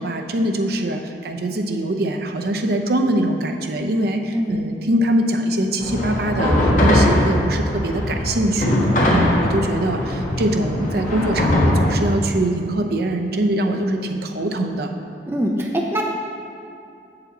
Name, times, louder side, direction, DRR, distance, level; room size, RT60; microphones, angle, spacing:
voice 1, 0.0-8.8 9.1-14.9, right 1 dB, 60° right, 5 dB, 0.6 m, -23 dB
sound 1, 5.8-12.0, left 1 dB, 45° left, 1.4 m, -20 dB
voice 2, 15.3-16.0, equal, 15° right, 0 dB, 0.5 m, -22 dB
7.0 x 6.8 x 4.0 m, 2.6 s
head